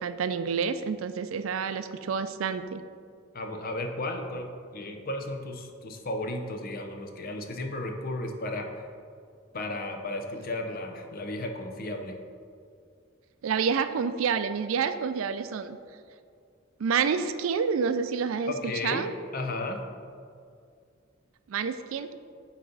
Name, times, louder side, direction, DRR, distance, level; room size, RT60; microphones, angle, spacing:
voice 1, 0.0-2.8 13.4-15.8 16.8-18.5 18.8-19.1 21.5-22.1, right 6 dB, 80° right, 11 dB, 0.4 m, -28 dB
voice 2, 3.3-8.7 9.5-12.2 18.5-19.8, left 1 dB, 45° left, 4 dB, 0.7 m, -34 dB
9.3 x 4.2 x 3.9 m, 2.3 s
head